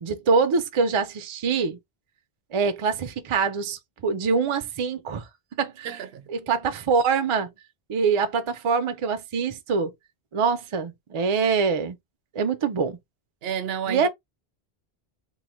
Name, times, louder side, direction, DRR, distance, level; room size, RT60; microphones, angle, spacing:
voice 1, 0.0-1.8 2.5-5.2 5.6-6.0 6.3-7.5 7.9-9.9 10.3-12.0 12.3-13.0 13.9-14.1, right 5 dB, 50° right, 0.3 m, -24 dB
voice 2, 5.8-6.2 13.4-14.1, right 8 dB, 75° right, 0.8 m, -31 dB
3.1 x 2.0 x 3.0 m
omnidirectional pair, 1.0 m